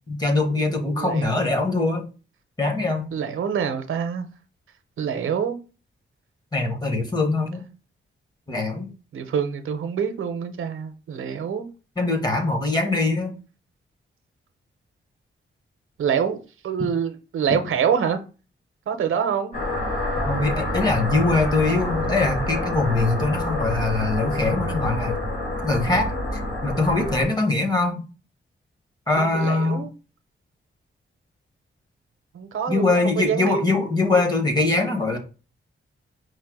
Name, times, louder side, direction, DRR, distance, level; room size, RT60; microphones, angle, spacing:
voice 1, 0.1-2.0 2.6-3.1 6.5-7.6 8.5-8.9 12.0-13.4 20.2-25.2 25.6-26.1 26.6-28.0 29.1-29.9 32.7-35.2, left 3 dB, 20° left, 0.8 m, -22 dB
voice 2, 1.0-1.5 3.1-4.3 5.0-5.6 9.1-11.7 16.0-16.4 16.6-18.2 18.9-19.5 29.2-29.9 32.3-33.5, right 7 dB, 80° right, 0.6 m, -26 dB
sound 1, 19.5-27.2, left 1 dB, 45° left, 2.6 m, -27 dB
4.7 x 2.1 x 4.6 m
wide cardioid pair, 160°, 21 cm